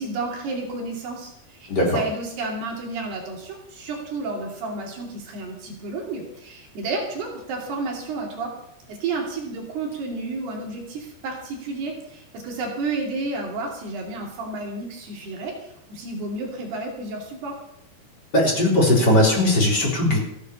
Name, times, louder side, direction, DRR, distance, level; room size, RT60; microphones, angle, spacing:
voice 1, 0.0-8.5 8.9-15.5 15.9-17.5, right 3 dB, 70° right, 0 dB, 4.7 m, -31 dB
voice 2, 1.7-2.0 18.3-20.2, left 1 dB, 25° left, -2 dB, 4.0 m, -18 dB
15.0 x 9.9 x 7.0 m, 0.79 s
omnidirectional pair, 5.0 m